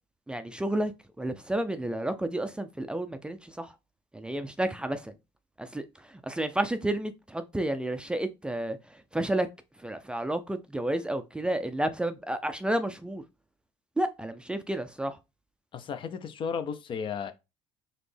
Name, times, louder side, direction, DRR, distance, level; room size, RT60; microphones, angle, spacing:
voice 1, 0.3-0.9 1.2-3.7 4.1-5.1 5.6-8.8 9.1-9.5 9.8-13.2 14.0-15.2, right 1 dB, 10° right, 0.4 m, -31 dB
voice 2, 15.7-17.3, left 6 dB, 45° left, 0.6 m, -34 dB
4.1 x 2.8 x 3.3 m
supercardioid pair, 90°, 12 cm